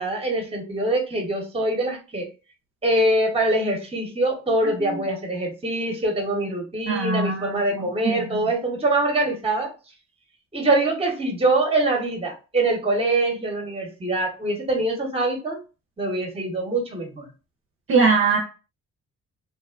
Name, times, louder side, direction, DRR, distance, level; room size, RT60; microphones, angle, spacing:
voice 1, 0.0-2.3 2.8-9.7 10.5-15.6 16.0-17.3, right 2 dB, 20° right, 0.9 m, -24 dB
voice 2, 4.6-5.0 6.9-8.5 17.9-18.4, right 4 dB, 45° right, 0.6 m, -23 dB
2.6 x 2.0 x 2.4 m
cardioid pair, 90°, 30 cm